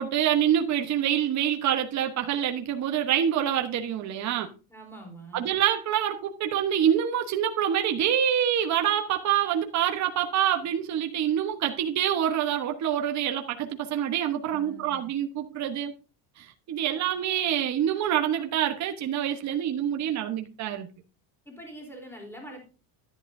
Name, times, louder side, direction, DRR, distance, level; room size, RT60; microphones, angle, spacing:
voice 1, 0.0-4.5 5.3-15.9 16.4-20.9, right 10 dB, 35° right, 1.1 m, -26 dB
voice 2, 4.7-5.5 14.4-15.1 21.5-22.6, right 1 dB, 5° left, 3.6 m, -44 dB
11.5 x 10.5 x 2.7 m
cardioid pair, 135°, 46 cm